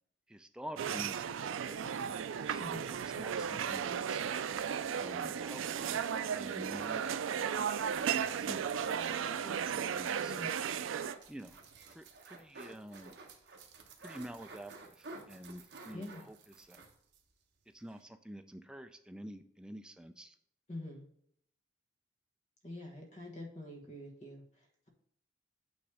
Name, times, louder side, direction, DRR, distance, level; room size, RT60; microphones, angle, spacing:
voice 1, 0.3-2.6 2.9-4.2 5.0-6.0 6.3-7.5 8.0-8.9 9.2-10.4 11.3-11.6 11.9-13.1 14.0-16.8 17.7-20.4 23.9-24.0, equal, 5° right, 7 dB, 0.4 m, -49 dB
sound 1, 0.8-11.1, right 7 dB, 85° right, 0.4 m, -35 dB
sound 2, 8.1-17.2 17.6-17.7 17.9-18.0, right 3 dB, 60° right, 1.1 m, -53 dB
voice 2, 10.2-10.5 15.9-16.2 20.7-21.1 22.6-24.9, left 1 dB, 35° left, 0 dB, 1.4 m, -46 dB
8.7 x 3.1 x 4.9 m, 0.72 s
head